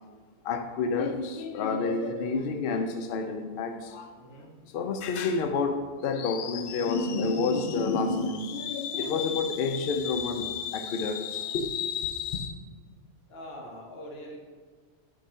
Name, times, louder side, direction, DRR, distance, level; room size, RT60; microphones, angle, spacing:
voice 1, 0.4-4.1 4.7-12.6, left 4 dB, 80° left, 0.5 m, -29 dB
voice 2, 1.9-2.3 4.2-4.6 9.1-9.4 13.3-14.4, equal, 50° left, 1.3 m, -44 dB
6.5 x 2.7 x 5.6 m
omnidirectional pair, 1.5 m